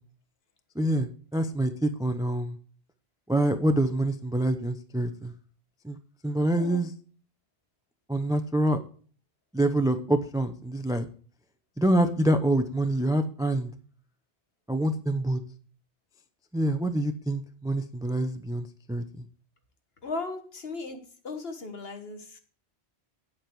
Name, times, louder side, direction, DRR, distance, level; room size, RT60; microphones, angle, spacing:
voice 1, 0.8-2.6 3.3-5.3 5.8-6.0 6.2-6.9 8.1-8.8 9.5-11.1 11.8-13.7 14.7-15.4 16.5-19.2, right 1 dB, 5° right, 9 dB, 0.5 m, -26 dB
voice 2, 20.0-22.4, left 3 dB, 65° left, 6 dB, 1.8 m, -37 dB
8.8 x 7.9 x 4.6 m, 0.42 s
omnidirectional pair, 1.1 m